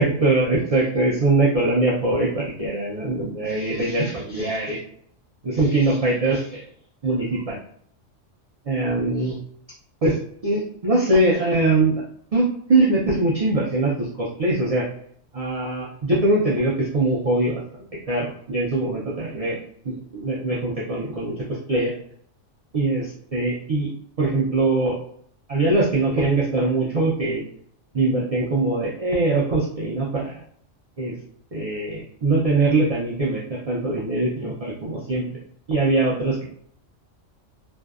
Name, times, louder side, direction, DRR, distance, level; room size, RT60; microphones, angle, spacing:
voice 1, 0.0-4.8 5.4-6.7 7.0-7.6 8.7-9.4 10.0-12.0 12.3-14.9 15.3-17.6 18.1-19.6 20.1-21.9 22.7-23.9 24.2-25.0 25.5-27.4 27.9-30.4 31.0-31.1 31.5-35.4 35.7-36.4, right 2 dB, 60° right, -5 dB, 0.4 m, -22 dB
2.6 x 2.1 x 2.3 m, 0.64 s
omnidirectional pair, 1.3 m